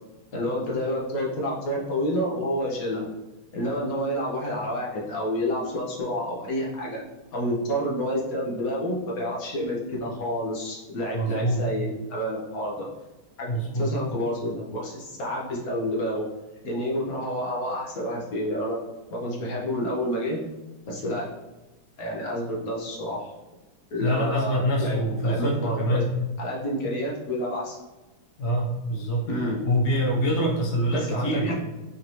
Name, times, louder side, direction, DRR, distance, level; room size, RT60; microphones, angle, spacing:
voice 1, 0.3-3.1 3.5-7.0 7.3-12.8 13.4-13.5 13.7-16.2 16.6-18.8 19.1-20.4 20.9-21.3 22.0-23.3 23.9-25.0 25.2-26.0 26.4-27.8 29.3-29.6 30.9-31.5, equal, 60° left, -4 dB, 1.0 m, -29 dB
voice 2, 11.1-11.6 13.5-13.9 24.0-26.1 28.4-29.3 29.6-31.5, equal, 85° left, -2 dB, 0.6 m, -25 dB
5.1 x 2.7 x 3.0 m, 1.1 s
omnidirectional pair, 2.4 m